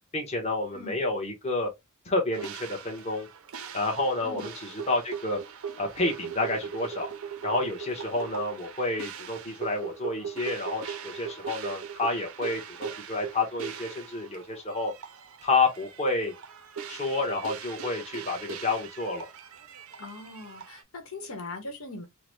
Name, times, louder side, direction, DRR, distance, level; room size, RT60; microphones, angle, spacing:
voice 1, 0.1-1.7 2.1-3.3 3.7-4.5 4.9-5.4 5.8-7.1 7.4-14.9 15.4-16.3 16.9-19.3, left 2 dB, 30° left, 1.0 m, -29 dB
sound 1, 2.3-20.8, right 7 dB, 80° right, 0.5 m, -40 dB
voice 2, 20.0-22.1, left 2 dB, 85° left, 1.1 m, -40 dB
3.8 x 2.1 x 3.1 m
head